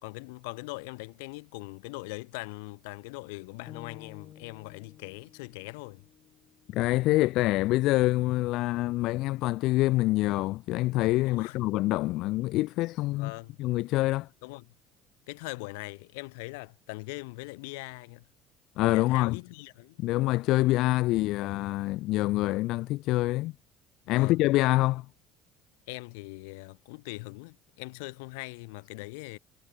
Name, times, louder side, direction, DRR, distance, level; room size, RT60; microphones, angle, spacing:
voice 1, 0.0-6.1 11.2-11.6 13.1-13.6 14.4-14.7 15.3-18.3 18.9-20.0 24.0-24.4 25.9-29.4, left 28 dB, 90° left, 3.0 m, -41 dB
sound 1, 3.7-7.8, left 10 dB, 45° left, 3.9 m, -53 dB
voice 2, 6.7-13.3 13.6-14.3 18.8-19.4 20.0-23.5 24.1-25.1, left 18 dB, 70° left, 0.4 m, -26 dB
supercardioid pair, 105°, 0 cm